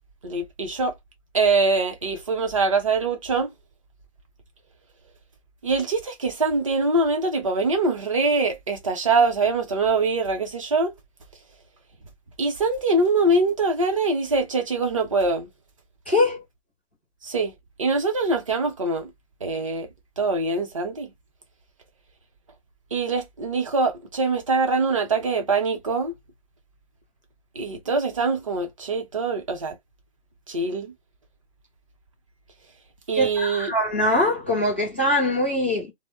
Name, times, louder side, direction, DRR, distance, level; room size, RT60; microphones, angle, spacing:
voice 1, 0.2-0.9 1.3-3.5 5.6-10.9 12.4-15.5 17.2-17.5 17.8-19.1 19.4-19.9 20.2-21.1 22.9-26.1 27.6-29.7 30.5-30.9 33.1-33.7, right 3 dB, 30° right, 0.6 m, -23 dB
voice 2, 16.1-16.4 33.1-35.9, left 1 dB, 10° left, 0.5 m, -22 dB
2.1 x 2.0 x 3.3 m
hypercardioid pair, 165°, 31 cm